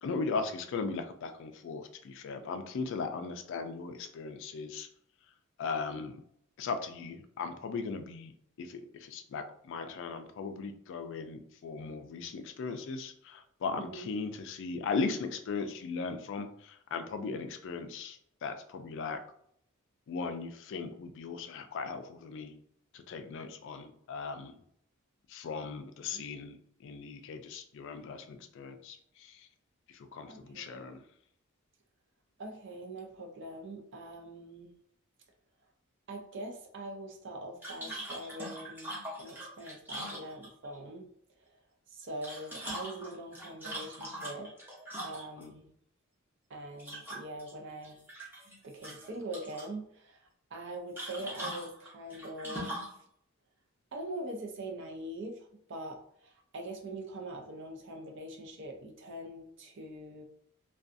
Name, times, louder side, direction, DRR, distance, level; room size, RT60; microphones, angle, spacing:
voice 1, 0.0-4.9 5.6-6.2 6.6-8.3 8.6-19.2 20.1-22.5 22.9-24.6 25.3-29.5 29.9-31.0 45.4-45.5, left 4 dB, 60° left, 8 dB, 0.3 m, -38 dB
voice 2, 13.8-14.1 26.1-26.3 30.2-30.9 32.4-34.7 36.1-41.1 41.4-41.6 41.9-44.5 45.0-45.7 46.5-48.0 48.6-52.8 53.9-60.2, right 1 dB, 55° right, 2 dB, 0.5 m, -43 dB
sound 1, 37.6-40.8 42.0-45.5 46.8-47.5 47.8-48.5 48.8-49.7 51.0-53.0, right 1 dB, 10° right, 0.6 m, -41 dB
2.5 x 2.3 x 2.5 m, 0.68 s
head